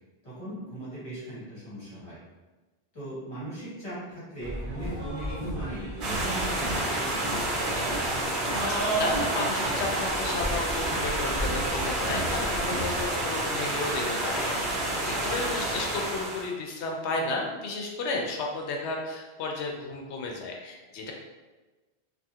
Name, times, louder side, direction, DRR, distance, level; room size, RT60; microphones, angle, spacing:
voice 1, 0.2-2.2 2.9-7.6 15.0-15.4, right 1 dB, 30° left, -9 dB, 1.4 m, -39 dB
sound 1, 4.4-13.1, right 1 dB, 40° right, 0.8 m, -34 dB
sound 2, 6.0-16.5, right 1 dB, 75° right, 1.0 m, -29 dB
voice 2, 8.7-21.1, left 3 dB, 85° left, 0 dB, 0.9 m, -33 dB
2.7 x 2.7 x 2.4 m, 1.2 s
omnidirectional pair, 1.1 m